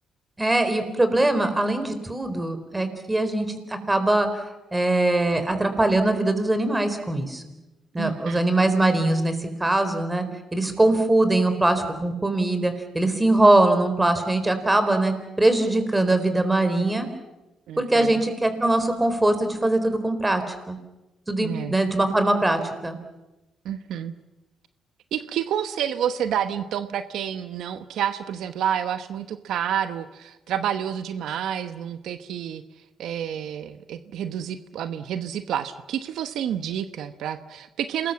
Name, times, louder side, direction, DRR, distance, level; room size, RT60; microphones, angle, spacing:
voice 1, 0.4-4.4 4.7-7.4 7.9-10.2 10.5-17.1 17.8-20.8 21.3-23.0, right 2 dB, 15° right, 8 dB, 4.1 m, -22 dB
voice 2, 8.0-8.6 17.7-18.2 21.4-21.8 23.6-24.1 25.1-32.6 33.0-38.1, right 9 dB, 80° right, 10 dB, 1.0 m, -29 dB
28.0 x 20.5 x 7.4 m, 1.0 s
cardioid pair, 90°, 0 cm